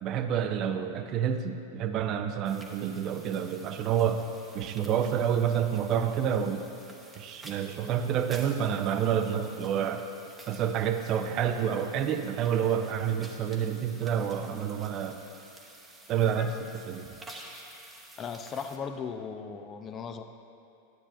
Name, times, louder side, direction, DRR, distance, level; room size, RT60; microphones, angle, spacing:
voice 1, 0.0-4.2 4.5-6.7 7.2-10.0 10.5-15.2 16.1-16.5 16.9-17.2, right 8 dB, 35° right, 7 dB, 0.5 m, -28 dB
sound 1, 2.4-18.8, right 1 dB, 10° right, 0.9 m, -51 dB
voice 2, 18.2-20.2, left 6 dB, 25° left, 7 dB, 0.4 m, -37 dB
12.0 x 8.4 x 2.6 m, 2.8 s
figure-of-eight pair, 90°, 0 cm